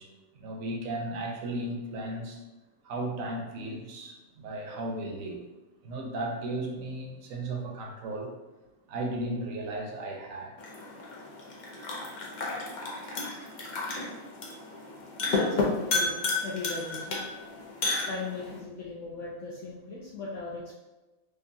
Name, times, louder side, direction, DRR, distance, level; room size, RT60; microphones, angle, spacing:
voice 1, 0.0-2.4 2.8-5.4 5.8-8.3 8.9-10.6 13.0-13.1 13.7-14.0 15.2-15.3, right 1 dB, 70° right, 1 dB, 1.0 m, -35 dB
sound 1, 10.6-18.6, left 3 dB, 50° left, 0.6 m, -32 dB
voice 2, 15.3-17.2 18.1-20.7, left 3 dB, 70° left, -4 dB, 0.9 m, -38 dB
5.1 x 2.3 x 2.6 m, 1.1 s
omnidirectional pair, 1.5 m